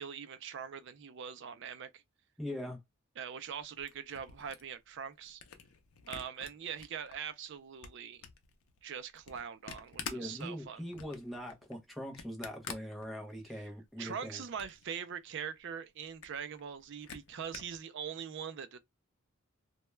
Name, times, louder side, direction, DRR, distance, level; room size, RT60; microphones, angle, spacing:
voice 1, 0.0-2.0 3.2-5.4 6.1-8.2 8.8-10.8 14.0-18.8, right 7 dB, 55° right, 0.4 m, -42 dB
voice 2, 2.4-2.8 10.0-14.4, equal, ahead, 0.6 m, -42 dB
Camera, 3.5-7.1 7.5-13.6 14.0-14.9 15.3-15.4 15.6-15.7 16.0-17.8, left 6 dB, 80° left, 0.6 m, -48 dB
2.2 x 2.2 x 3.0 m
head